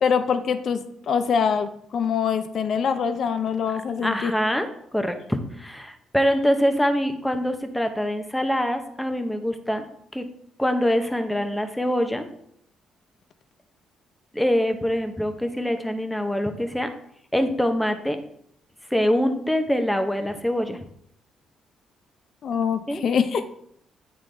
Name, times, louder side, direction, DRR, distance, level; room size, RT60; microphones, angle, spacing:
voice 1, 0.0-4.3 22.4-23.5, left 6 dB, 60° left, 10 dB, 0.5 m, -24 dB
voice 2, 4.0-4.7 4.9-9.8 10.1-10.3 10.6-12.3 14.3-16.9 17.3-18.2 18.9-20.8 22.9-23.0, equal, 5° left, 7 dB, 0.8 m, -24 dB
8.9 x 3.8 x 3.3 m, 0.70 s
cardioid pair, 90°, 0 cm